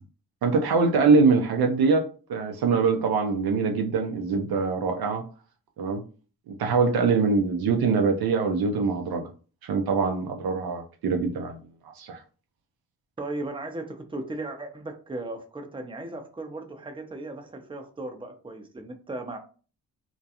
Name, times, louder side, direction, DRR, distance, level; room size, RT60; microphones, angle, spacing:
voice 1, 0.4-5.2 5.8-6.0 6.5-9.2 9.6-11.6 12.0-12.2, right 4 dB, 60° right, 4 dB, 0.5 m, -23 dB
voice 2, 13.2-19.4, right 2 dB, 10° right, 5 dB, 0.6 m, -36 dB
2.4 x 2.2 x 2.8 m, 0.37 s
supercardioid pair, 45°, 43 cm